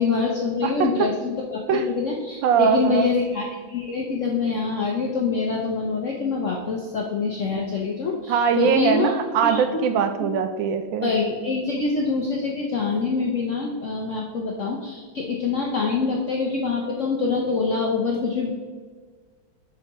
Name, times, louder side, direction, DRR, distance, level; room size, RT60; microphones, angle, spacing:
voice 1, 0.0-9.1 9.4-9.8 11.0-18.5, left 4 dB, 65° left, -1 dB, 0.7 m, -25 dB
voice 2, 0.6-1.1 1.7-1.9 2.4-3.1 8.3-11.1, right 7 dB, 75° right, 8 dB, 1.2 m, -22 dB
7.8 x 6.1 x 3.0 m, 1.5 s
omnidirectional pair, 2.2 m